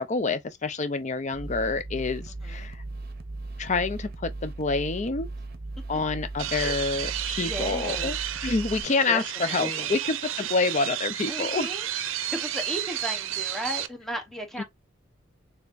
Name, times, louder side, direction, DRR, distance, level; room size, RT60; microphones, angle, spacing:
voice 1, 0.0-2.8 3.6-5.3 5.9-8.2 8.4-11.7 14.6-14.7, left 3 dB, 35° left, 0.5 m, -27 dB
sound 1, 1.3-8.8, right 2 dB, 50° right, 0.7 m, -37 dB
voice 2, 2.3-2.7 6.5-6.7 7.4-8.1 9.1-9.9 11.3-11.8 12.3-14.6, equal, ahead, 0.9 m, -35 dB
sound 2, 6.4-13.9, right 11 dB, 90° right, 0.5 m, -32 dB
4.1 x 3.4 x 2.5 m
head